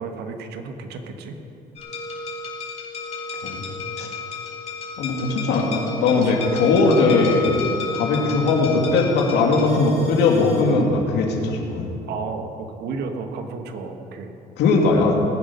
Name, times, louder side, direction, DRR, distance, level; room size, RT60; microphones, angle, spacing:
voice 1, 0.0-1.4 6.1-6.3 12.1-14.3, right 4 dB, 75° right, 5 dB, 1.5 m, -32 dB
sound 1, 1.8-10.6, left 5 dB, 40° left, 3.7 m, -33 dB
voice 2, 5.0-7.6 7.9-11.9 14.6-15.2, left 3 dB, 80° left, 0 dB, 2.4 m, -19 dB
20.0 x 9.3 x 5.6 m, 2.9 s
cardioid pair, 110°, 17 cm